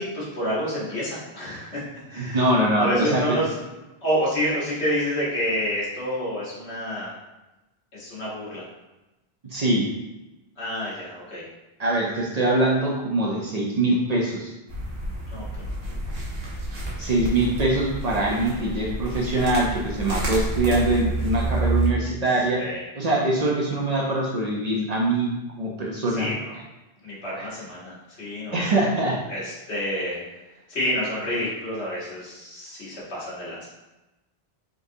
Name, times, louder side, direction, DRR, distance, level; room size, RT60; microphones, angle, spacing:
voice 1, 0.0-3.5 4.0-7.2 7.9-8.7 10.6-11.4 15.3-15.8 22.6-22.8 26.1-26.5 27.0-28.7 29.3-30.2 30.7-33.7, equal, 85° left, -7 dB, 1.6 m, -29 dB
voice 2, 2.2-3.2 9.5-9.9 11.8-14.5 17.0-22.6 23.0-25.3 25.6-26.3 27.4-27.5 28.5-29.2, right 2 dB, 45° right, -3 dB, 0.7 m, -23 dB
sound 1, 14.7-21.9, right 2 dB, 65° right, 1.1 m, -29 dB
3.9 x 3.7 x 2.7 m, 1.0 s
omnidirectional pair, 1.1 m